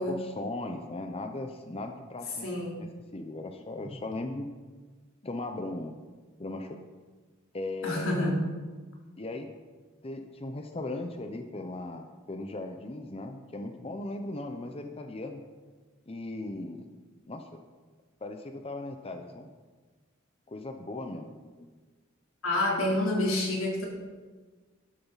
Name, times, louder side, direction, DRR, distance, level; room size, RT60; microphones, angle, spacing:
voice 1, 0.0-2.5 2.8-2.9 3.1-4.5 5.2-5.9 6.4-6.8 7.5-8.3 9.2-9.5 10.0-15.4 16.1-16.9 17.3-17.6 18.2-19.5 20.5-21.7, left 2 dB, 30° left, 6 dB, 0.7 m, -38 dB
voice 2, 2.4-2.8 7.8-8.4 22.4-23.9, left 1 dB, 90° left, -2 dB, 3.5 m, -28 dB
13.0 x 12.0 x 4.1 m, 1.4 s
head